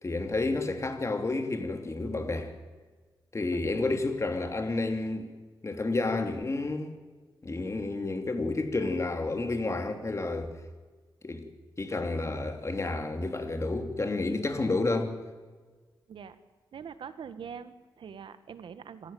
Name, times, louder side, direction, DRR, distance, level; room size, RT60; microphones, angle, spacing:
voice 1, 0.0-2.5 3.3-5.3 5.6-6.9 7.4-10.6 11.2-11.5 11.8-15.2, left 2 dB, 35° left, 3.3 m, -30 dB
voice 2, 16.7-19.1, right 7 dB, 85° right, 1.5 m, -43 dB
27.0 x 15.0 x 9.3 m
cardioid pair, 85°, 8 cm